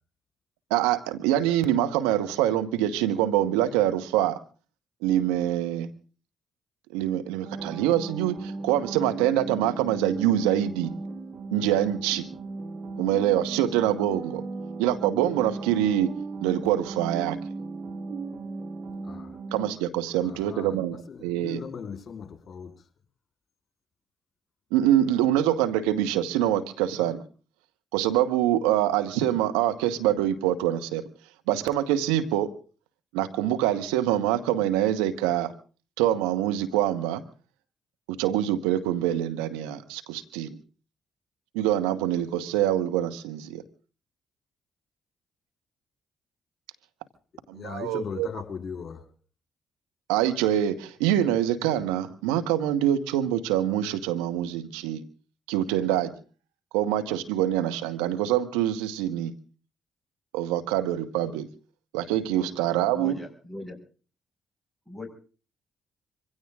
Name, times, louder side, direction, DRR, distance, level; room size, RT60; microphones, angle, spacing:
voice 1, 0.7-4.4 5.0-5.9 6.9-10.9 11.5-12.3 13.0-14.4 14.8-16.1 16.4-17.4 19.5-21.0 21.2-21.6 24.7-27.2 27.9-31.0 31.5-32.5 33.1-35.5 36.0-37.2 38.1-40.6 41.5-43.6 47.5-48.3 50.1-55.0 55.5-56.1 56.7-59.3 60.3-61.5 61.9-63.2, right 12 dB, 90° right, 1.4 m, -25 dB
sound 1, 7.4-19.7, right 3 dB, 60° right, 2.0 m, -36 dB
voice 2, 19.0-19.4 20.2-22.9 47.5-49.1, left 6 dB, 50° left, 4.1 m, -39 dB
voice 3, 62.3-62.6 62.9-63.8 64.9-65.1, left 1 dB, 5° right, 6.4 m, -39 dB
23.5 x 16.5 x 3.7 m
hypercardioid pair, 55°, 0 cm